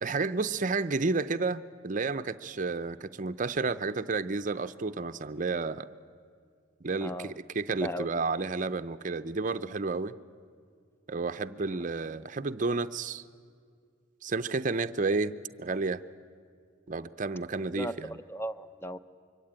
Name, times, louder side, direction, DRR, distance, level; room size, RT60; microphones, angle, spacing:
voice 1, 0.0-5.9 6.8-10.1 11.1-13.2 14.2-15.3 15.6-16.0 16.9-18.2, right 3 dB, 40° right, 12 dB, 0.6 m, -31 dB
voice 2, 7.0-7.3 7.8-8.1 17.7-17.9 18.3-19.0, equal, 10° left, 12 dB, 0.6 m, -36 dB
25.0 x 23.5 x 8.9 m, 2.2 s
head